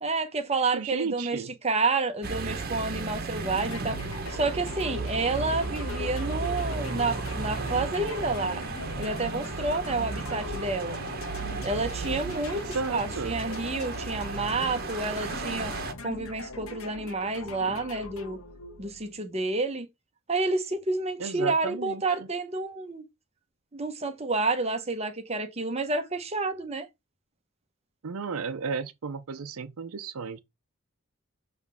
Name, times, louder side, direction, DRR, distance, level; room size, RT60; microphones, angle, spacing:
voice 1, 0.0-4.0 4.3-8.6 9.0-11.0 11.6-12.6 12.9-15.7 16.0-18.4 18.8-19.9 20.3-23.0 23.7-26.9, right 3 dB, 30° right, 0.9 m, -29 dB
voice 2, 0.7-1.5 12.5-13.4 21.2-22.3 28.0-30.4, right 5 dB, 80° right, 0.6 m, -34 dB
sound 1, 2.2-15.9, right 3 dB, 45° right, 1.2 m, -34 dB
sound 2, 3.4-19.3, left 4 dB, 70° left, 1.2 m, -41 dB
7.2 x 3.2 x 5.5 m
head